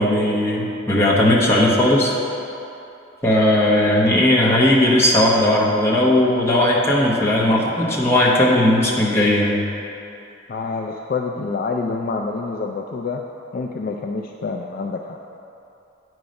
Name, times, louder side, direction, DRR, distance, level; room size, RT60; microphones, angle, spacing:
voice 1, 0.0-2.1 3.2-9.6, left 1 dB, 10° left, -5 dB, 1.1 m, -17 dB
voice 2, 10.5-13.2 13.5-15.2, left 4 dB, 45° left, 2 dB, 0.3 m, -27 dB
8.8 x 4.7 x 5.2 m, 2.8 s
head